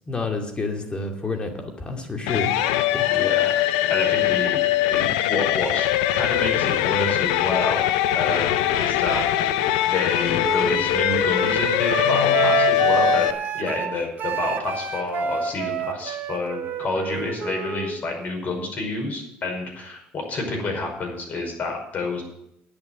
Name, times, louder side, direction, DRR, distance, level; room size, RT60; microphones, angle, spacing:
voice 1, 0.1-3.1, left 3 dB, 25° left, 3 dB, 2.4 m, -29 dB
sound 1, 2.3-13.3, left 13 dB, 80° left, 0.6 m, -22 dB
voice 2, 3.1-7.8 8.1-13.3 13.5-22.2, left 3 dB, 45° left, 2 dB, 5.2 m, -29 dB
Wind instrument woodwind instrument, 10.4-17.9, right 7 dB, 50° right, 1.2 m, -27 dB
10.5 x 7.1 x 9.0 m, 0.79 s
supercardioid pair, 75°, 4 cm